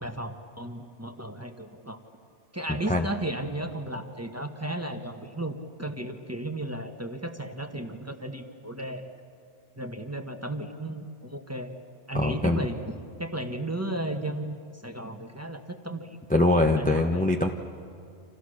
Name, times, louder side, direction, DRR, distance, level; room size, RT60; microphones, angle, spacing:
voice 1, 0.0-2.0 2.5-9.0 9.8-11.7 12.1-16.2 16.8-17.2, right 1 dB, 15° right, 5 dB, 1.3 m, -34 dB
voice 2, 2.7-3.1 12.1-12.6 16.3-17.5, left 2 dB, 5° left, 3 dB, 0.9 m, -23 dB
29.0 x 27.0 x 6.6 m, 2.4 s
omnidirectional pair, 1.2 m